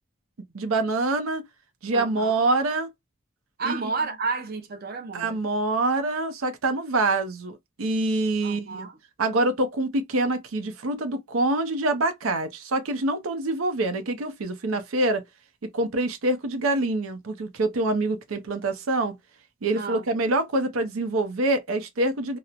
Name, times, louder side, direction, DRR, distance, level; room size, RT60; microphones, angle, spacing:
voice 1, 0.5-1.5 1.8-2.9 3.6-3.7 5.1-8.9 9.2-15.2 15.6-19.1 19.6-22.4, right 2 dB, 90° right, 0.6 m, -25 dB
voice 2, 1.9-2.4 3.6-5.4 8.4-9.0 19.7-20.1, right 4 dB, 50° right, 0.5 m, -31 dB
2.9 x 2.0 x 2.3 m
head